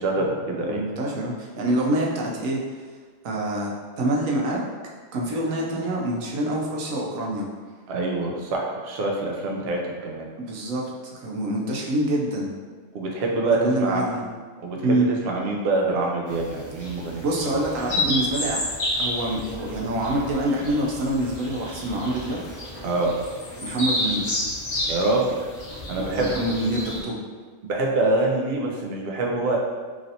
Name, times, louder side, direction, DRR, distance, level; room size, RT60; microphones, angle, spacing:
voice 1, 0.0-0.8 7.9-10.3 12.9-14.1 14.6-17.2 22.8-23.1 24.9-25.4 25.9-26.3 27.7-29.6, right 2 dB, 60° right, -1 dB, 0.6 m, -25 dB
voice 2, 0.7-2.6 3.2-3.7 4.0-4.6 5.1-7.5 10.4-12.5 13.5-14.2 14.8-15.1 17.2-18.6 19.0-22.4 23.6-24.4 25.9-27.2, right 1 dB, 85° right, -2 dB, 1.0 m, -26 dB
sound 1, 16.3-27.0, left 1 dB, 35° left, 0.7 m, -31 dB
3.1 x 2.7 x 2.6 m, 1.5 s
omnidirectional pair, 1.4 m